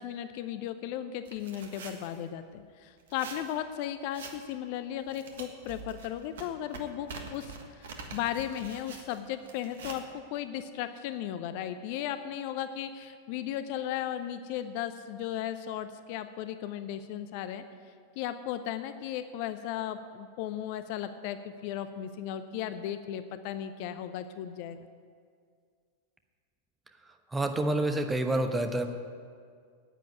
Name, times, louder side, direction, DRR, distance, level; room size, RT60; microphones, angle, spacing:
voice 1, 0.0-10.0 10.3-17.6 18.2-24.8, left 11 dB, 45° left, 11 dB, 0.6 m, -36 dB
sound 1, 1.3-2.2 3.0-3.5 4.1-4.5 5.0-10.0, right 4 dB, 60° right, 1.5 m, -45 dB
voice 2, 27.3-28.9, right 1 dB, 10° right, 6 dB, 1.1 m, -28 dB
10.0 x 9.2 x 9.4 m, 2.1 s
figure-of-eight pair, 90°, 0 cm